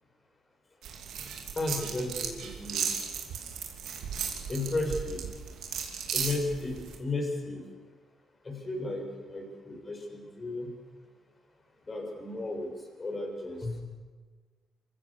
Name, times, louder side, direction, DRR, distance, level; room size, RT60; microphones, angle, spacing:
sound 1, 0.8-7.0, right 7 dB, 80° right, 2.9 m, -36 dB
voice 1, 1.6-2.8 4.5-5.2 6.1-7.6 8.4-9.0 9.3-10.7 11.9-12.7 13.0-13.8, left 2 dB, 30° left, 1 dB, 6.8 m, -34 dB
26.5 x 15.5 x 7.3 m, 1.4 s
cardioid pair, 90°, 0 cm